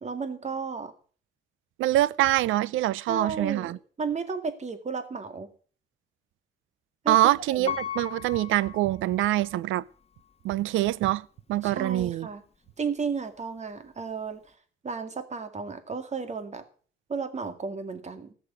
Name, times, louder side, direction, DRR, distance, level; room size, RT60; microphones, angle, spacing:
voice 1, 0.0-0.9 3.1-5.5 7.0-7.7 11.6-12.4 12.8-14.5 14.8-16.6 17.1-18.3, right 5 dB, 35° right, 2.1 m, -33 dB
voice 2, 1.8-3.8 7.1-9.8 10.4-12.3, right 15 dB, 85° right, 0.6 m, -25 dB
Piano, 7.7-9.6 10.2-10.3, left 8 dB, 30° left, 1.3 m, -37 dB
14.0 x 6.4 x 8.2 m
cardioid pair, 90°, 20 cm